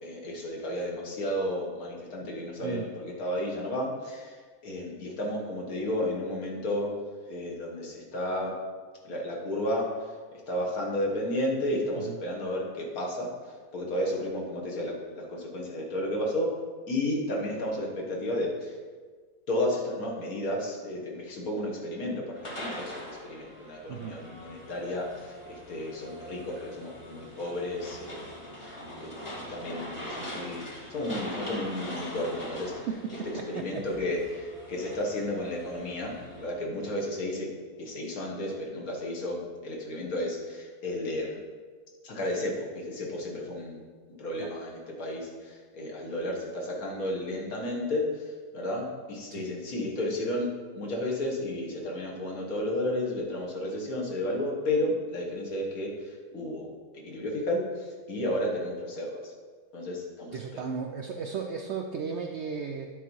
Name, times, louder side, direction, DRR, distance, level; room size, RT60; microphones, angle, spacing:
voice 1, 0.0-6.9 7.3-8.5 9.0-10.1 10.5-13.3 13.7-16.5 16.9-18.7 19.5-28.2 28.6-29.1 29.5-30.6 30.9-32.9 33.5-37.5 37.8-41.4 42.0-43.8 44.2-56.7 56.9-59.3 59.7-60.7, left 1 dB, 70° left, -2 dB, 1.7 m, -32 dB
sound 1, 22.3-36.6, equal, 20° left, 1.1 m, -42 dB
voice 2, 32.9-33.8 44.4-44.5 49.4-49.5 60.3-62.9, right 6 dB, 70° right, 3 dB, 0.6 m, -35 dB
9.2 x 4.0 x 4.6 m, 1.5 s
omnidirectional pair, 1.6 m